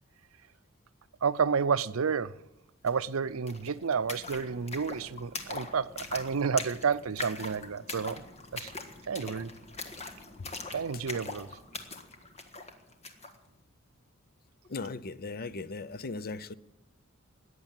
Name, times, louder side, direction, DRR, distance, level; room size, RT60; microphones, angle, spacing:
voice 1, 1.2-2.4 2.8-8.2 8.5-8.7 9.1-9.5 10.7-11.5, right 6 dB, 80° right, 0.6 m, -30 dB
sound 1, 2.9-3.0 3.2-13.4, left 3 dB, 30° left, 1.5 m, -42 dB
voice 2, 14.7-16.5, left 3 dB, 45° left, 0.6 m, -37 dB
14.5 x 9.6 x 9.0 m
head